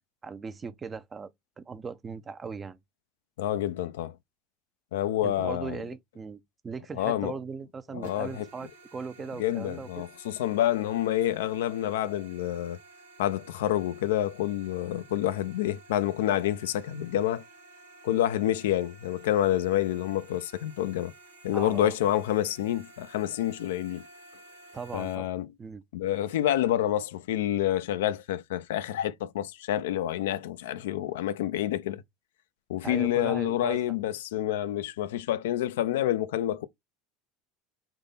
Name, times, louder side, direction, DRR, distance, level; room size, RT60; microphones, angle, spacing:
voice 1, 0.2-1.3 1.6-2.8 5.2-10.1 21.5-21.9 24.7-25.3 25.6-25.8 32.8-33.8, right 5 dB, 30° right, 0.5 m, -38 dB
voice 2, 3.4-4.1 4.9-5.8 6.9-7.3 7.9-8.5 9.4-12.8 13.2-17.4 18.0-21.1 21.4-24.0 24.9-25.5 25.9-32.0 32.7-36.7, left 12 dB, 75° left, 0.4 m, -28 dB
sound 1, 8.0-25.1, right 3 dB, 85° right, 0.9 m, -53 dB
3.7 x 2.7 x 4.0 m
hypercardioid pair, 75°, 0 cm